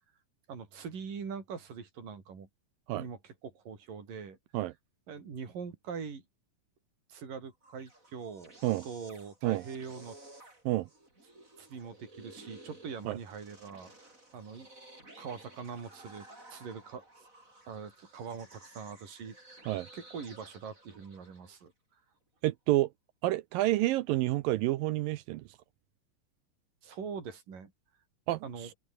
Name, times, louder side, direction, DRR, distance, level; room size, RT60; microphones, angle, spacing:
voice 1, 0.5-2.5 2.9-4.4 5.1-6.2 7.1-10.2 11.6-14.7 15.2-16.3 16.5-17.0 17.7-21.7 26.8-27.7 28.4-28.7, right 6 dB, 60° right, 6.3 m, -43 dB
sound 1, 7.5-21.6, right 2 dB, 20° right, 7.9 m, -55 dB
voice 2, 22.4-22.9 23.2-25.4 28.3-28.4, right 16 dB, 75° right, 2.3 m, -29 dB
omnidirectional pair, 4.4 m